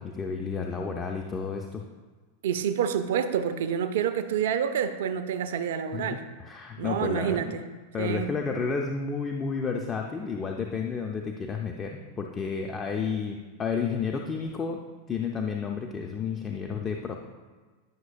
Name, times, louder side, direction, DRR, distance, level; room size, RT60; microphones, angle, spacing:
voice 1, 0.0-1.8 5.9-7.6 7.9-14.8 15.1-17.2, left 5 dB, 20° left, 2 dB, 0.5 m, -31 dB
voice 2, 2.4-6.2 6.8-7.6 8.0-8.3, right 8 dB, 55° right, 10 dB, 0.5 m, -28 dB
9.3 x 6.1 x 2.5 m, 1.4 s
figure-of-eight pair, 90°, 0 cm